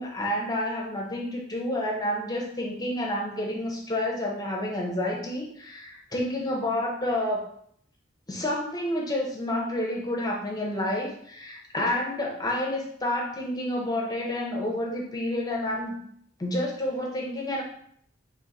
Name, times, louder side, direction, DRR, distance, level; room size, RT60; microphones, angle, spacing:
voice 1, 0.0-7.4 8.3-16.0 16.4-17.6, left 1 dB, 20° left, -1 dB, 0.7 m, -29 dB
3.1 x 3.1 x 3.9 m, 0.67 s
head